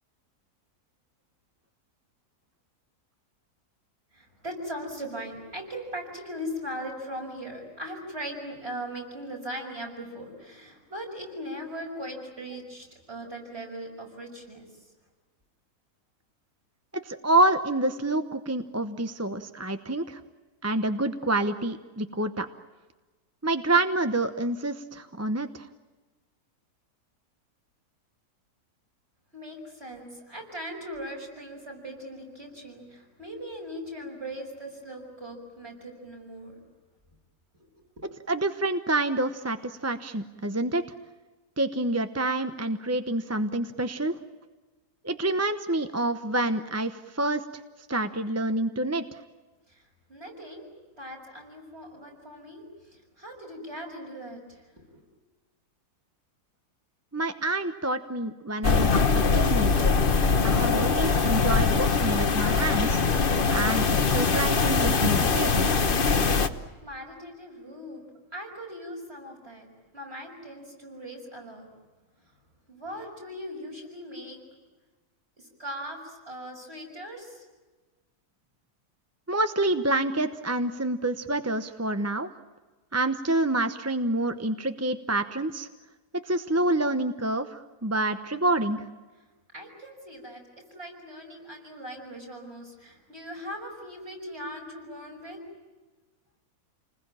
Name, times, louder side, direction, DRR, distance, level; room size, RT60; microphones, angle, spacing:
voice 1, 4.1-14.7 29.3-36.6 37.5-37.7 49.7-49.8 50.1-50.7 51.0-55.0 66.8-68.1 68.3-69.7 69.9-71.7 72.7-74.4 75.4-77.4 89.5-95.4, equal, 40° right, 1 dB, 6.6 m, -39 dB
voice 2, 17.0-20.2 20.6-22.5 23.4-25.7 38.3-40.8 41.6-44.1 45.0-47.4 47.9-49.2 57.1-59.9 60.4-63.0 63.5-65.7 79.3-82.3 82.9-85.7 86.1-88.8, right 2 dB, 15° right, 8 dB, 0.7 m, -27 dB
sound 1, 58.6-66.5, left 4 dB, 35° left, 1.2 m, -22 dB
29.5 x 20.5 x 8.9 m, 1.3 s
omnidirectional pair, 1.7 m